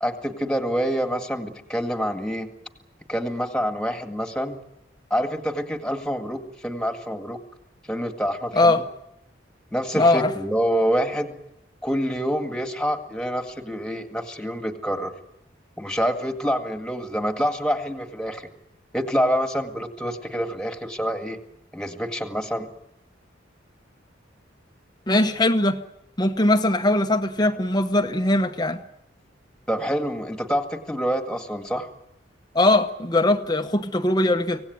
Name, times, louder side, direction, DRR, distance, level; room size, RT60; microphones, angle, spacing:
voice 1, 0.0-2.5 3.1-4.6 5.1-7.4 7.9-8.8 9.7-11.4 11.8-15.1 15.8-18.5 18.9-21.4 21.7-22.7 29.7-31.9, equal, 5° left, 1.9 m, -26 dB
voice 2, 9.9-10.3 25.1-25.8 26.2-28.8 32.5-34.6, left 2 dB, 20° left, 0.9 m, -20 dB
25.0 x 18.0 x 9.5 m
head